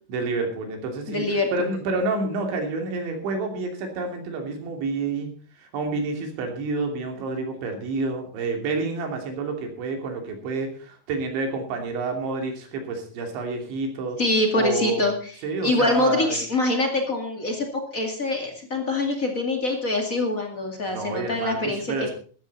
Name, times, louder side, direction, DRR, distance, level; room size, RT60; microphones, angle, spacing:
voice 1, 0.1-5.3 5.6-14.2 14.5-15.1 15.4-16.4 20.9-22.1, right 3 dB, 75° right, 3 dB, 5.2 m, -29 dB
voice 2, 1.1-1.7 14.2-15.3 15.6-22.1, left 2 dB, 35° left, 3 dB, 1.3 m, -24 dB
14.5 x 13.5 x 4.1 m, 0.43 s
omnidirectional pair, 5.3 m